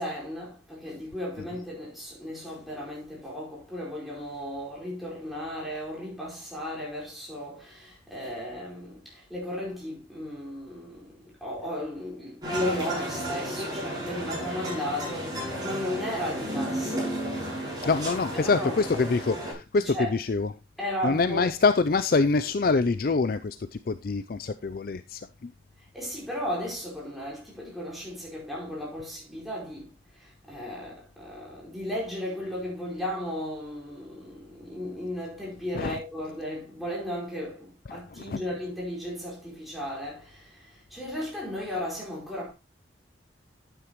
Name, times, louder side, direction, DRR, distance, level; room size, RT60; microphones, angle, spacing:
voice 1, 0.0-17.2 18.3-18.8 19.8-20.1 20.8-21.5 25.9-29.9 30.1-42.5, left 1 dB, ahead, 4.8 m, -35 dB
sound 1, 12.4-19.5, equal, 20° right, 6.8 m, -33 dB
voice 2, 17.8-20.5 21.0-25.5 35.7-36.0 37.9-38.4, left 4 dB, 50° left, 0.4 m, -25 dB
11.5 x 9.2 x 3.0 m
head